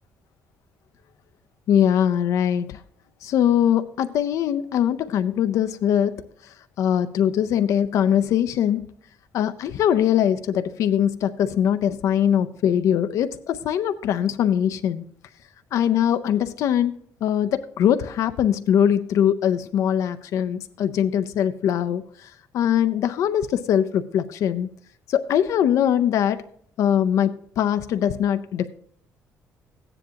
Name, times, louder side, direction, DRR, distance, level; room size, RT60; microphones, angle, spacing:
voice 1, 1.7-2.8 3.2-8.8 9.3-15.0 15.7-16.9 17.2-24.7 25.1-26.4 26.8-28.7, left 9 dB, 60° left, 10 dB, 0.5 m, -22 dB
15.0 x 9.9 x 2.8 m, 0.63 s
cardioid pair, 170°, 6 cm